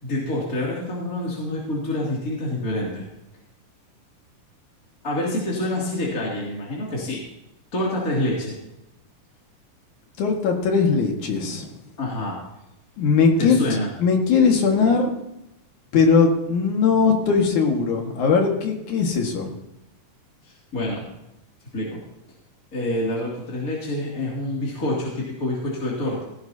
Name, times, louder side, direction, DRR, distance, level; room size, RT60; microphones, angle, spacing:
voice 1, 0.0-3.0 5.0-7.2 7.7-8.6 12.0-12.4 13.4-13.9 20.4-21.1 21.7-22.0 22.7-26.2, left 1 dB, 25° left, -5 dB, 2.9 m, -27 dB
voice 2, 10.2-11.7 13.0-13.6 14.0-15.1 15.9-19.5, left 5 dB, 70° left, 2 dB, 3.2 m, -19 dB
17.0 x 16.5 x 2.8 m, 0.88 s
omnidirectional pair, 3.7 m